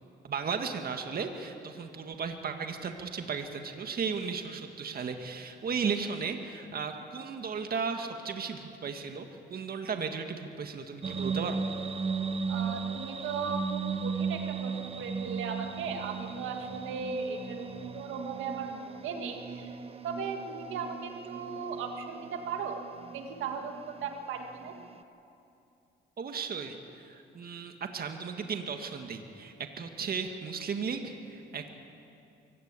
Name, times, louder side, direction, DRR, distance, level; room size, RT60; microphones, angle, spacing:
voice 1, 0.2-9.2 9.5-11.6 26.2-31.7, right 5 dB, 50° right, 5 dB, 1.8 m, -35 dB
sound 1, 11.0-25.0, right 5 dB, 30° right, 0.9 m, -37 dB
voice 2, 12.5-17.7 17.9-19.8 20.0-22.8 23.1-24.7, right 5 dB, 90° right, 4 dB, 2.0 m, -37 dB
24.0 x 16.5 x 8.3 m, 2.7 s
cardioid pair, 90°, 20 cm